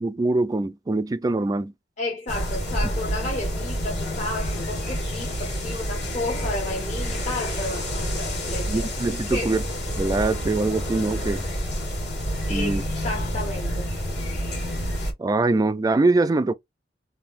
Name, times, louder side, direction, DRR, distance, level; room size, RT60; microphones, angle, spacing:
voice 1, 0.0-1.7 8.7-9.6 10.0-11.4 12.5-12.8 15.2-16.5, right 2 dB, 20° right, 0.3 m, -23 dB
voice 2, 2.0-8.9 9.3-9.6 12.5-14.0, left 2 dB, 40° left, 1.0 m, -32 dB
sound 1, 2.3-15.1, equal, 65° left, 1.8 m, -28 dB
3.5 x 2.6 x 2.4 m
head